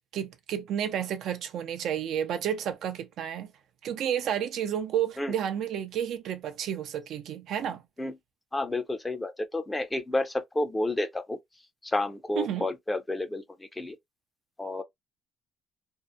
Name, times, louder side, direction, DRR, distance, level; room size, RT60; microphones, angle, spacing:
voice 1, 0.1-3.5 3.8-7.8 12.4-12.7, right 9 dB, 70° right, 0.5 m, -31 dB
voice 2, 8.5-11.4 11.8-14.0 14.6-14.8, left 2 dB, 15° left, 0.6 m, -30 dB
2.6 x 2.0 x 2.2 m
cardioid pair, 90°, 0 cm